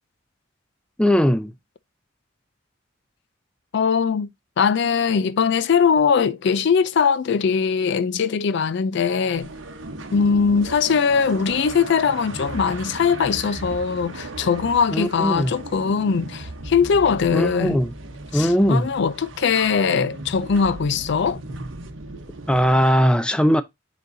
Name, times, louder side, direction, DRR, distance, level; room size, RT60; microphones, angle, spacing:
voice 1, 1.0-1.5 14.9-15.5 17.3-17.9 18.3-18.9 22.5-23.6, equal, 5° left, 0.4 m, -19 dB
voice 2, 3.7-4.3 4.6-9.5 10.1-17.8 18.3-21.4, left 6 dB, 60° left, 0.4 m, -21 dB
sound 1, 9.3-23.0, right 2 dB, 85° right, 1.0 m, -36 dB
9.2 x 4.0 x 2.6 m
head